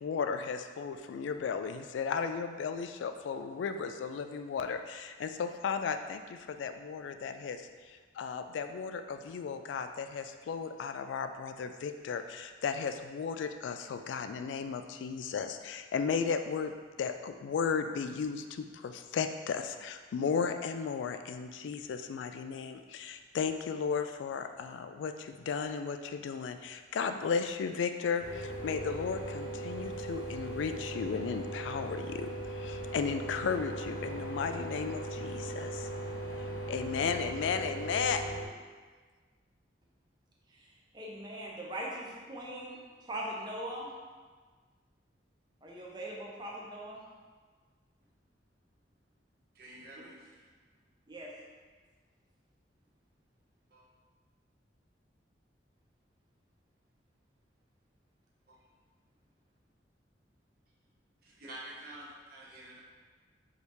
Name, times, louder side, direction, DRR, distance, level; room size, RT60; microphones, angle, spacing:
voice 1, 0.0-16.7 17.0-35.9 36.7-38.3, left 6 dB, 80° left, 8 dB, 0.3 m, -35 dB
sound 1, 28.2-38.5, right 1 dB, 55° left, 0.7 m, -39 dB
voice 2, 40.9-42.8 43.1-43.9 45.6-47.0 51.1-51.3, right 1 dB, 25° right, -3 dB, 0.6 m, -40 dB
voice 3, 49.5-50.5 53.7-53.8 58.5-58.6 61.2-62.8, right 1 dB, 55° right, -6 dB, 1.1 m, -48 dB
4.6 x 2.8 x 3.3 m, 1.5 s
head